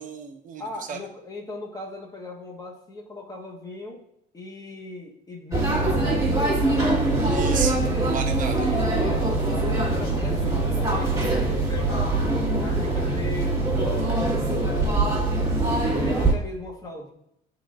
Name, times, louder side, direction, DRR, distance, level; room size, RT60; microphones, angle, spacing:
voice 1, 0.0-1.0 7.3-8.7, right 6 dB, 50° right, 5 dB, 1.0 m, -33 dB
voice 2, 0.6-4.0 4.3-7.0 8.5-15.3 15.9-17.1, left 2 dB, 20° left, -1 dB, 1.4 m, -38 dB
sound 1, 5.5-16.3, right 2 dB, 20° right, 1.8 m, -23 dB
9.8 x 4.0 x 2.5 m, 0.75 s
cardioid pair, 110°, 17 cm